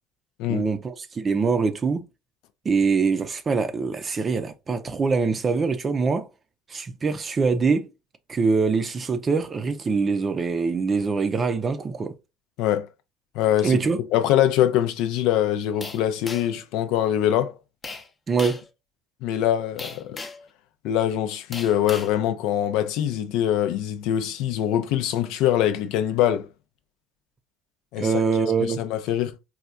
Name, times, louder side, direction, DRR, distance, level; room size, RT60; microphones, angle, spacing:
voice 1, 0.5-2.1 2.6-6.3 6.7-7.9 8.3-12.1 13.6-14.0 18.3-18.6 28.0-28.8, right 4 dB, 35° right, 0.5 m, -24 dB
voice 2, 13.3-13.8 14.1-17.6 19.2-20.2 20.8-26.5 27.9-28.1 28.6-29.4, left 11 dB, 70° left, 0.5 m, -23 dB
sound 1, 15.8-16.6 17.8-18.1 18.4-18.7 19.8-20.5 21.5-22.1, left 3 dB, 30° left, 0.7 m, -36 dB
4.2 x 2.3 x 2.4 m
hypercardioid pair, 70°, 0 cm